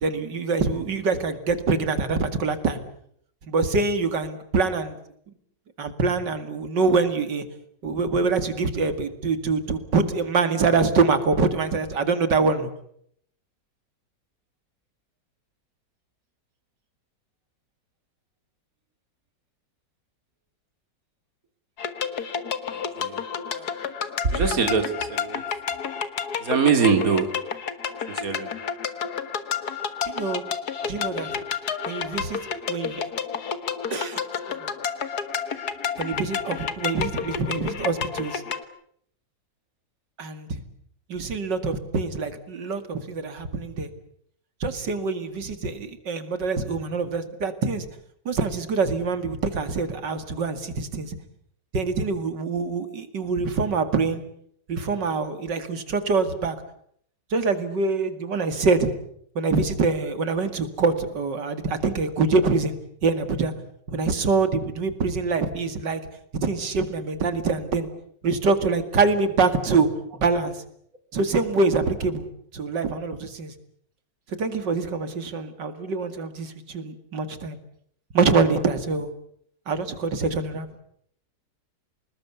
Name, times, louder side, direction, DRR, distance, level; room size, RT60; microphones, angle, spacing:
voice 1, 0.0-2.8 3.4-5.0 5.8-7.4 7.8-12.7 30.0-30.4 30.9-31.3 31.9-33.0 33.9-34.2 34.6-34.7 36.0-38.4 40.2-40.6 41.1-43.9 44.6-47.9 48.3-51.2 51.7-54.2 54.7-56.6 57.3-58.9 59.3-63.5 63.9-66.0 66.4-67.9 68.2-69.9 70.1-70.6 71.1-73.5 74.3-77.6 78.1-79.1 79.7-80.7, right 4 dB, 75° right, 10 dB, 2.8 m, -25 dB
sound 1, 21.8-38.6, left 7 dB, 60° left, 2.0 m, -30 dB
voice 2, 24.3-25.4 26.4-27.3 28.1-28.5, right 5 dB, 50° right, 7 dB, 3.0 m, -23 dB
26.5 x 20.0 x 8.2 m, 0.67 s
omnidirectional pair, 1.9 m